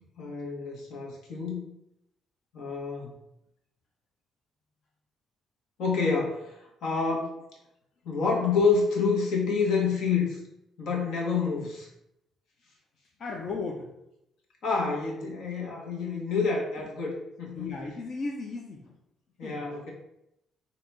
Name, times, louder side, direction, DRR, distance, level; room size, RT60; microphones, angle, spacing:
voice 1, 0.2-1.7 2.5-3.1 5.8-7.4 8.0-10.4 10.8-11.9 14.6-17.7 19.4-19.9, left 4 dB, 70° left, -2 dB, 1.4 m, -28 dB
voice 2, 13.2-13.9 17.5-18.8 19.4-19.6, left 3 dB, 45° left, 0 dB, 0.6 m, -35 dB
4.0 x 2.8 x 4.6 m, 0.82 s
cardioid pair, 140°, 0 cm